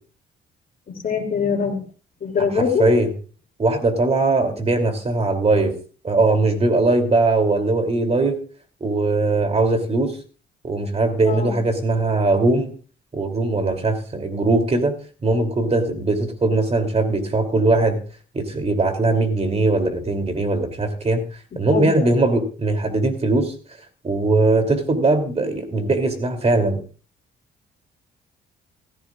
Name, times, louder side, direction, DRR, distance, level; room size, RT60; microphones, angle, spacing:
voice 1, 1.0-1.8 2.2-2.9 11.2-11.6 21.7-22.1, left 5 dB, 45° left, 3 dB, 3.0 m, -22 dB
voice 2, 2.4-3.1 3.6-5.7 6.0-8.4 8.8-10.2 10.6-12.7 13.1-14.9 15.2-18.0 18.3-21.2 21.5-23.5 24.0-26.8, right 2 dB, 30° right, 6 dB, 3.1 m, -20 dB
16.0 x 15.0 x 2.5 m, 0.38 s
cardioid pair, 90°, 20 cm